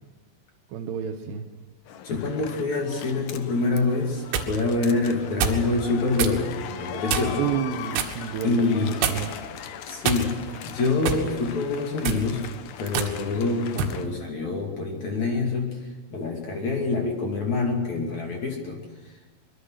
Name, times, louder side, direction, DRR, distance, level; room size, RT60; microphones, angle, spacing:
voice 1, 0.7-1.4 7.4-9.3, right 8 dB, 70° right, 1 dB, 3.0 m, -30 dB
sound 1, 1.9-14.1, left 9 dB, 85° left, 1.9 m, -39 dB
voice 2, 2.0-7.5 8.4-9.0 9.9-12.5 12.8-19.1, left 3 dB, 45° left, 1 dB, 3.3 m, -26 dB
sound 2, 4.0-4.5 5.4-5.7 6.2-6.4 7.1-7.4 7.9-8.2 9.0-9.4 10.0-10.6 11.1-11.3 11.9-12.3 12.9-13.1 13.8-14.0, right 7 dB, 90° right, 4.4 m, -26 dB
24.5 x 22.5 x 6.5 m, 1.3 s
omnidirectional pair, 5.6 m